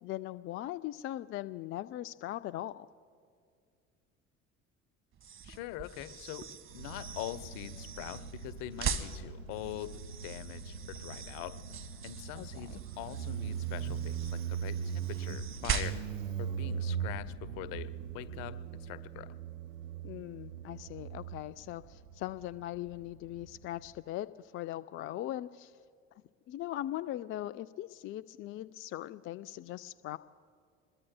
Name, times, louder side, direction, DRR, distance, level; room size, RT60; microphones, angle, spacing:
voice 1, 0.0-2.9 12.3-12.8 20.0-25.7 26.5-30.2, left 14 dB, 35° left, 14 dB, 0.4 m, -40 dB
sound 1, 5.1-16.3, right 7 dB, 35° right, 1.2 m, -41 dB
voice 2, 5.4-6.5 6.7-11.6 12.0-16.1 16.4-19.4, left 15 dB, 60° left, 13 dB, 0.8 m, -43 dB
Motorcycle, 6.7-23.9, right 7 dB, 85° right, 0.8 m, -40 dB
26.5 x 21.5 x 2.2 m, 2.2 s
hypercardioid pair, 65°, 38 cm